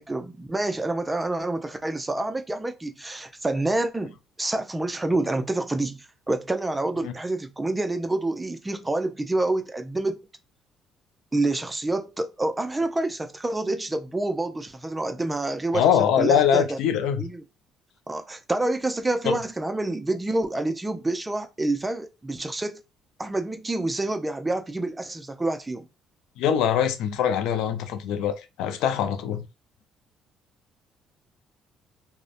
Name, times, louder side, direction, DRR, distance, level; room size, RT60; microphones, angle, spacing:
voice 1, 0.0-10.2 11.3-15.9 16.2-16.8 17.2-17.4 18.1-22.8 23.2-25.9, right 2 dB, 15° right, 0.4 m, -27 dB
voice 2, 15.7-17.3 19.2-19.3 26.4-29.5, left 9 dB, 80° left, 0.4 m, -23 dB
2.6 x 2.1 x 2.5 m
supercardioid pair, 70°, 0 cm